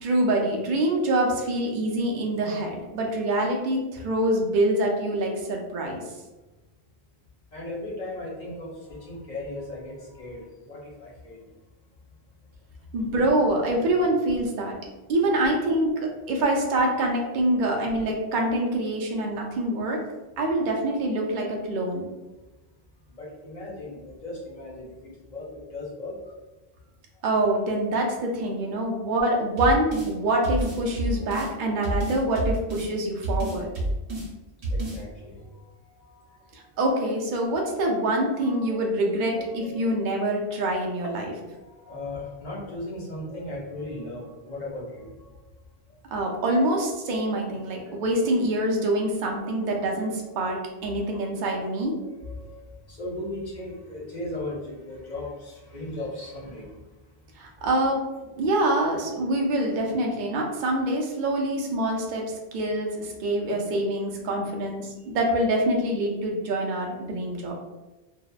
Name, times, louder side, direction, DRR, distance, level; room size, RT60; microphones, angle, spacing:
voice 1, 0.0-6.0 12.9-14.7 15.1-15.9 16.3-20.0 20.4-22.1 27.2-33.7 36.5-41.2 46.1-51.9 57.4-58.0 58.4-67.5, right 1 dB, 60° right, 0 dB, 0.6 m, -25 dB
voice 2, 7.5-11.4 23.2-24.9 25.3-26.1 28.8-28.9 31.0-31.4 34.7-36.4 36.7-36.8 37.8-38.0 38.4-40.0 41.0-45.3 47.5-47.6 48.3-48.6 49.4-49.6 50.2-56.7, left 1 dB, 45° left, -4 dB, 0.7 m, -38 dB
sound 1, 29.6-30.1 30.4-31.5 31.8-32.9 33.2-34.3 34.6-35.0, right 1 dB, 80° right, 1.0 m, -28 dB
2.7 x 2.0 x 2.3 m, 1.1 s
omnidirectional pair, 1.1 m